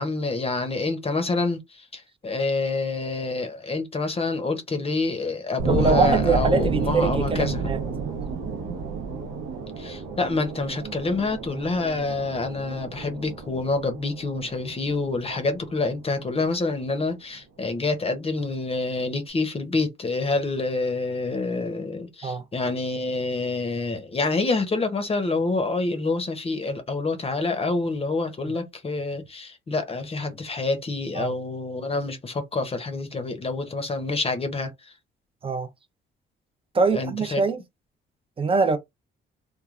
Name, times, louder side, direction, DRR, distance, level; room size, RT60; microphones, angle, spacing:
voice 1, 0.0-7.7 9.8-34.9 36.9-37.4, left 3 dB, 30° left, 0.7 m, -27 dB
sound 1, 5.6-16.4, right 5 dB, 80° right, 0.8 m, -30 dB
voice 2, 5.7-7.8 22.2-22.4 31.2-31.3 35.4-35.7 36.7-37.6 38.4-38.8, right 4 dB, 25° right, 0.6 m, -23 dB
3.1 x 2.2 x 2.4 m
cardioid pair, 90°, 20 cm